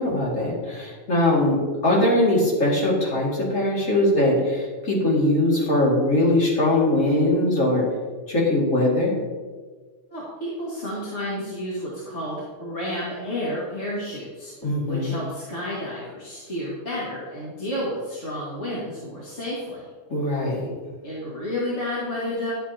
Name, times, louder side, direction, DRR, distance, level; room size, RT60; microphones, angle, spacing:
voice 1, 0.0-7.8 8.3-9.1 14.6-15.2 20.1-20.7, left 1 dB, 85° left, -4 dB, 2.6 m, -21 dB
voice 2, 10.1-14.5 14.9-19.9 21.0-22.5, left 1 dB, 65° left, -8 dB, 2.2 m, -31 dB
11.0 x 8.6 x 2.8 m, 1.4 s
omnidirectional pair, 1.3 m